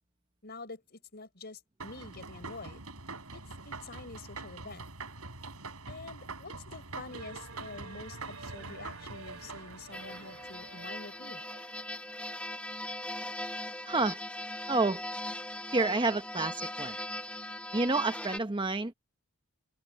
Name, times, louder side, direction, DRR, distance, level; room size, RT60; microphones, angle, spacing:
voice 1, 0.4-2.8 3.3-4.9 5.9-11.4, left 3 dB, 50° left, 4.4 m, -47 dB
sound 1, 1.8-10.9, right 3 dB, 85° right, 6.4 m, -45 dB
sound 2, 7.1-14.1, right 3 dB, 65° right, 2.9 m, -51 dB
sound 3, 9.9-18.4, left 1 dB, 5° left, 0.8 m, -39 dB
voice 2, 13.9-14.2 14.7-15.0 15.7-17.0 17.7-18.9, right 3 dB, 20° right, 0.9 m, -29 dB
head